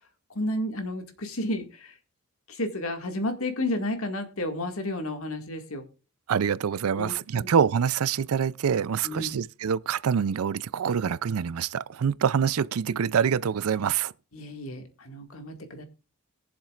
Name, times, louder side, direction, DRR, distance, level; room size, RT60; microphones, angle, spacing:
voice 1, 0.3-1.9 2.5-5.8 7.0-7.5 9.0-9.4 14.3-15.8, left 1 dB, 70° left, 2.0 m, -32 dB
voice 2, 6.3-14.1, right 7 dB, 90° right, 0.4 m, -25 dB
21.5 x 7.3 x 2.4 m
head